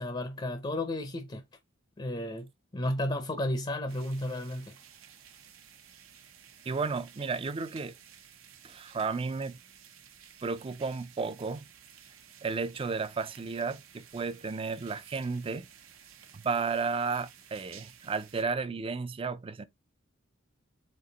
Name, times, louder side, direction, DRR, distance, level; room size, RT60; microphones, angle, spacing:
voice 1, 0.0-1.4 2.0-4.7, left 1 dB, 25° left, 0.5 m, -33 dB
sound 1, 3.9-18.4, right 8 dB, 85° right, 0.8 m, -55 dB
voice 2, 6.7-7.9 8.6-9.6 10.4-11.7 12.4-15.7 16.4-19.6, right 4 dB, 25° right, 0.4 m, -33 dB
4.5 x 3.0 x 3.9 m
head